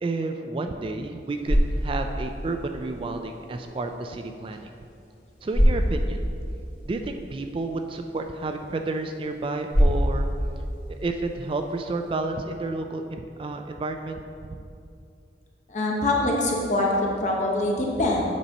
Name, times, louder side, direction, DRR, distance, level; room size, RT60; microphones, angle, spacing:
voice 1, 0.0-4.7 5.4-6.2 6.9-10.3 10.9-14.2, right 2 dB, 30° right, 6 dB, 0.3 m, -31 dB
sound 1, 1.1-12.2, equal, 65° left, 1.8 m, -28 dB
voice 2, 15.7-18.3, left 1 dB, 40° left, -2 dB, 1.0 m, -24 dB
8.3 x 4.2 x 5.3 m, 2.5 s
head